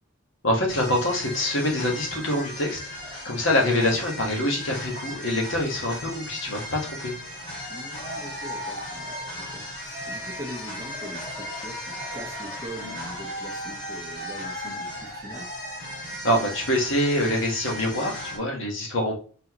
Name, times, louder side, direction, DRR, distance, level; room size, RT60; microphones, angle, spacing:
voice 1, 0.4-2.9 3.2-7.1 16.2-19.2, left 1 dB, 65° left, 0 dB, 1.4 m, -25 dB
sound 1, 0.7-18.4, equal, 20° left, 2.1 m, -36 dB
voice 2, 7.7-15.5, equal, 15° right, 0 dB, 1.0 m, -42 dB
4.0 x 3.9 x 3.0 m, 0.40 s
head